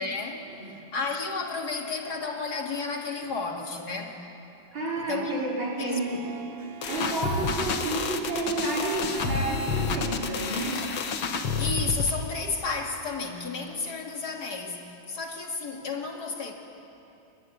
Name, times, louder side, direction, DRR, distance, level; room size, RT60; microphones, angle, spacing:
voice 1, 0.0-4.2 5.1-5.3 5.8-6.0 11.6-16.5, left 4 dB, 55° left, 1 dB, 3.0 m, -32 dB
voice 2, 4.7-6.3 6.9-10.8, right 2 dB, 80° right, -4 dB, 5.6 m, -30 dB
Harp, 5.8-14.1, right 6 dB, 60° right, 0.6 m, -43 dB
sound 1, 6.8-12.1, left 5 dB, 80° left, 2.2 m, -29 dB
29.0 x 20.5 x 9.6 m, 2.7 s
omnidirectional pair, 2.1 m